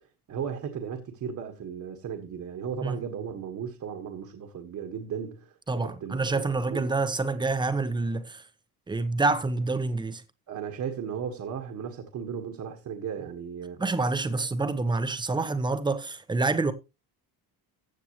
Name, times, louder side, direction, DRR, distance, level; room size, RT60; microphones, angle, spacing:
voice 1, 0.3-6.9 10.5-13.8 14.3-14.4, right 7 dB, 45° right, 1.6 m, -36 dB
voice 2, 5.7-8.4 8.9-10.2 13.8-16.7, right 3 dB, 10° right, 0.9 m, -27 dB
15.0 x 7.8 x 3.0 m
cardioid pair, 155°, 41 cm